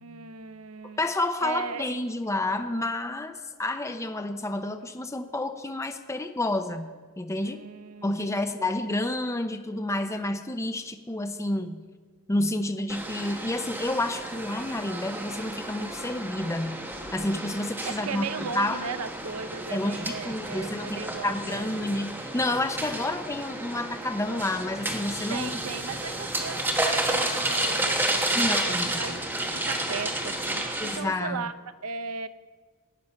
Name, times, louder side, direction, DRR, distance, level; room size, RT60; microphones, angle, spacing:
voice 1, 0.0-1.0 1.4-1.9 7.4-8.7 17.8-21.7 25.3-31.5 31.8-32.3, right 5 dB, 75° right, 11 dB, 0.6 m, -37 dB
voice 2, 1.0-6.9 7.2-7.6 8.0-11.9 12.3-16.8 17.1-18.3 18.5-18.8 19.7-25.5 28.3-29.0 30.8-31.4, left 1 dB, 15° left, 8 dB, 0.6 m, -29 dB
sound 1, 12.9-31.0, right 1 dB, 10° right, 1.2 m, -31 dB
17.0 x 9.3 x 5.7 m, 1.5 s
head